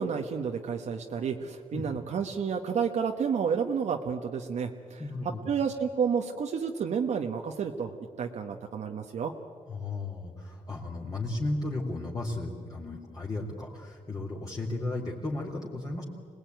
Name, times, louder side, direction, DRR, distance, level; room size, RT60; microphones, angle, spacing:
voice 1, 0.0-5.0 5.5-7.9 8.2-9.3, right 6 dB, 65° right, 3 dB, 1.3 m, -30 dB
voice 2, 5.0-5.5 9.7-16.0, left 2 dB, 30° left, -3 dB, 3.2 m, -34 dB
26.0 x 19.5 x 9.3 m, 2.1 s
cardioid pair, 110°, 13 cm